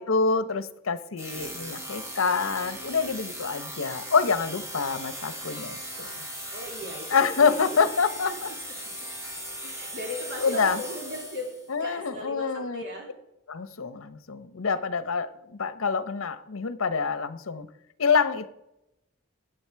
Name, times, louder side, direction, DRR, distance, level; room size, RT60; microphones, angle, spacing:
voice 1, 0.0-6.2 7.1-8.5 9.6-9.7 10.4-10.8 11.7-12.8 13.5-17.7 18.0-18.5, left 5 dB, 85° left, 14 dB, 0.8 m, -26 dB
sound 1, 1.2-11.7, right 1 dB, 15° right, 1.8 m, -38 dB
voice 2, 6.5-7.8 9.6-13.1, left 1 dB, 55° right, 0 dB, 3.0 m, -37 dB
15.5 x 9.2 x 4.6 m, 0.89 s
head